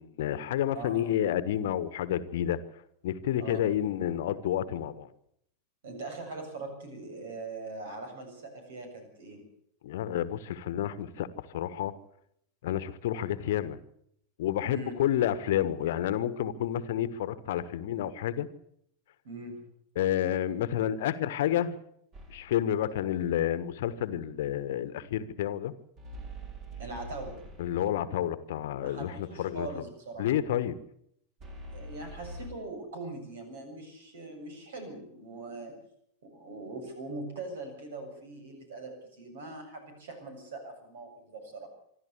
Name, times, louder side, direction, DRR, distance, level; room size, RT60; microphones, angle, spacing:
voice 1, 0.0-2.6 3.0-5.1 9.8-11.9 12.6-13.8 14.4-18.5 19.9-21.8 22.3-25.7 27.6-29.7 30.2-30.8, left 11 dB, 55° left, 15 dB, 1.3 m, -30 dB
voice 2, 5.8-9.4 14.6-14.9 19.2-19.6 26.8-27.4 28.8-30.3 31.7-35.8 36.3-41.7, right 2 dB, 60° right, 5 dB, 7.4 m, -41 dB
sound 1, 22.1-22.7 26.0-28.0 31.4-32.5, right 1 dB, 35° right, 4.1 m, -44 dB
26.0 x 12.0 x 8.5 m, 0.72 s
figure-of-eight pair, 90°, 0 cm